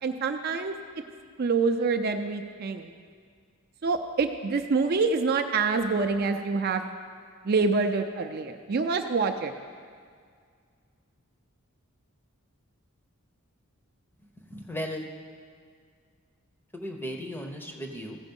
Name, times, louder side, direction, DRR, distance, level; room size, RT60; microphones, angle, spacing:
voice 1, 0.0-0.7 1.4-2.9 3.8-6.8 7.4-9.5, right 4 dB, 45° right, 6 dB, 0.4 m, -26 dB
voice 2, 14.5-15.1 16.7-18.2, equal, 10° left, 2 dB, 0.6 m, -36 dB
15.0 x 5.0 x 5.3 m, 2.1 s
head